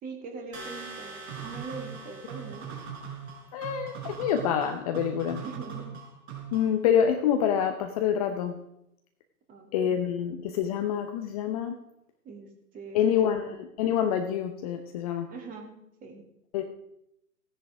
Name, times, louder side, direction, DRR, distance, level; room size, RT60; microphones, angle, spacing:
voice 1, 0.0-2.7 5.4-5.9 9.5-10.0 12.2-13.5 15.3-15.7 16.0-16.2, right 4 dB, 20° right, 2 dB, 2.5 m, -42 dB
sound 1, 0.5-3.4, right 2 dB, 65° right, 5.3 m, -45 dB
sound 2, 1.3-6.8, right 7 dB, 45° right, 5.3 m, -41 dB
voice 2, 3.5-5.4 6.5-8.6 9.7-11.8 12.9-15.3 16.5-16.6, left 8 dB, 25° left, 6 dB, 0.8 m, -26 dB
16.0 x 10.0 x 4.9 m, 0.79 s
hypercardioid pair, 135°, 46 cm